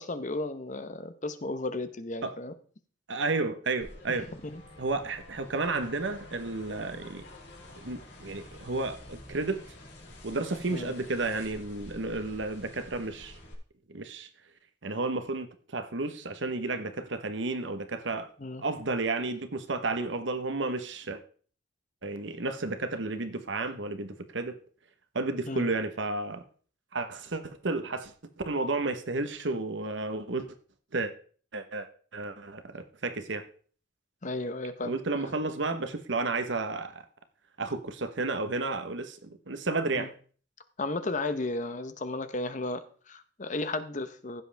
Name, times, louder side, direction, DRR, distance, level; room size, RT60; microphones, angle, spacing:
voice 1, 0.0-2.5 4.1-4.2 4.4-4.6 10.7-10.9 18.4-18.6 25.5-25.7 34.2-35.0 39.9-40.1 40.8-44.4, left 2 dB, 40° left, 10 dB, 1.0 m, -34 dB
voice 2, 3.1-4.3 4.8-7.2 7.8-9.6 10.2-13.4 13.9-14.3 14.8-18.3 18.6-21.2 22.0-24.6 25.1-26.4 26.9-28.1 28.4-30.5 30.9-31.1 31.5-33.5 34.8-37.0 37.6-40.1, right 3 dB, 75° right, 9 dB, 1.1 m, -32 dB
sound 1, 3.8-13.5, left 1 dB, 60° left, 4.0 m, -49 dB
15.5 x 7.7 x 3.5 m, 0.43 s
head